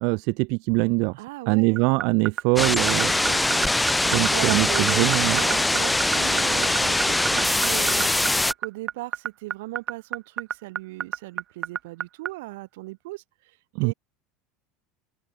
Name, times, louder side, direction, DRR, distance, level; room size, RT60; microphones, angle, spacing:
voice 1, 0.0-1.2 1.5-3.1 4.0-5.4 13.7-13.9, right 32 dB, 55° right, 1.6 m, -23 dB
voice 2, 1.2-1.8 3.2-3.7 4.1-8.1 8.6-13.2 13.8-13.9, right 21 dB, 80° right, 6.7 m, -37 dB
sound 1, 1.8-12.3, right 11 dB, 30° right, 2.0 m, -27 dB
sound 2, 2.6-8.5, left 2 dB, 5° left, 0.7 m, -22 dB
open air
cardioid pair, 160°, 0 cm